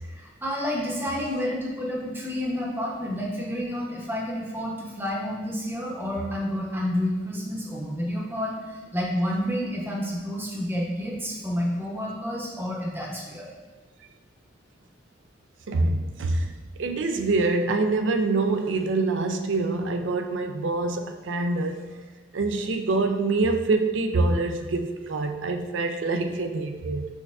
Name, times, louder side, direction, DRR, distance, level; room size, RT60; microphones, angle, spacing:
voice 1, 0.0-13.5, equal, 10° right, 0.8 m, -29 dB
voice 2, 15.7-16.5 16.8-21.8 22.3-27.1, right 3 dB, 70° right, 0.4 m, -25 dB
6.2 x 3.4 x 2.4 m
head